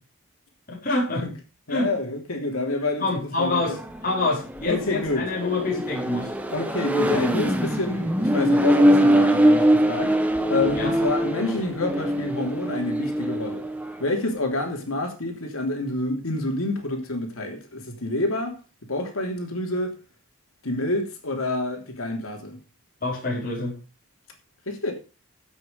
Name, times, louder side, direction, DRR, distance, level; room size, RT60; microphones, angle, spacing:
voice 1, 0.7-1.2 1.7-1.9 3.0-3.8 4.0-6.3 10.7-10.9 23.0-23.8, left 2 dB, 40° left, 5.1 m, -26 dB
voice 2, 1.7-3.7 4.7-5.3 6.5-10.1 10.5-13.6 14.0-18.6 18.9-19.9 20.6-22.6 24.7-24.9, left 2 dB, 85° left, 3.2 m, -28 dB
Accelerating revving vroom, 3.6-14.1, equal, 5° right, 1.2 m, -23 dB
16.0 x 6.3 x 5.2 m
head